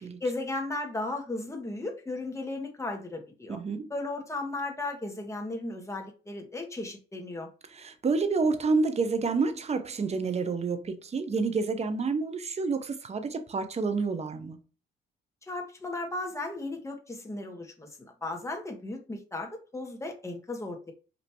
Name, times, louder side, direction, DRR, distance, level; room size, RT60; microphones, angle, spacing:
voice 1, 0.2-3.6 3.9-7.5 15.5-20.9, left 2 dB, 15° left, 1.5 m, -35 dB
voice 2, 3.5-3.9 7.7-14.6, right 4 dB, 35° right, 0.8 m, -29 dB
5.3 x 2.9 x 2.9 m
cardioid pair, 90°, 20 cm